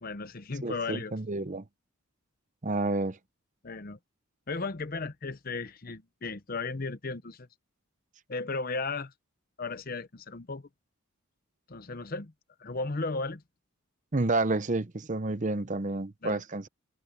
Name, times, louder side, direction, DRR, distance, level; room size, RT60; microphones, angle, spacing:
voice 1, 0.0-1.1 3.6-4.0 4.5-7.5 8.3-9.1 9.6-10.7 11.7-12.3 12.6-13.4 16.2-16.4, left 3 dB, 40° left, 0.8 m, -35 dB
voice 2, 0.6-1.6 2.6-3.2 14.1-16.7, right 2 dB, 35° right, 0.7 m, -30 dB
head